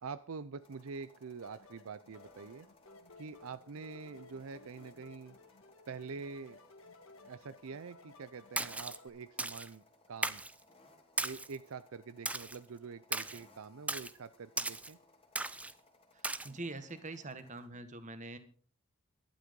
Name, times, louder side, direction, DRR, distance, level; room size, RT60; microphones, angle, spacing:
voice 1, 0.0-2.7 3.2-5.4 5.9-6.6 7.2-10.4 11.2-15.0, right 5 dB, 65° right, 14 dB, 0.5 m, -46 dB
sound 1, 0.6-17.7, left 2 dB, 25° left, 2.7 m, -65 dB
sound 2, 1.4-9.1, left 3 dB, 65° left, 1.7 m, -58 dB
Splash splatter, 8.6-9.0 9.4-9.7 10.2-10.5 11.2-11.6 12.3-12.6 13.1-13.4 13.9-14.1 14.6-14.9 15.4-15.7 16.2-16.5, right 2 dB, 5° right, 0.5 m, -36 dB
voice 2, 16.4-18.4, right 2 dB, 35° right, 10 dB, 1.5 m, -43 dB
12.0 x 11.5 x 5.3 m, 0.43 s
head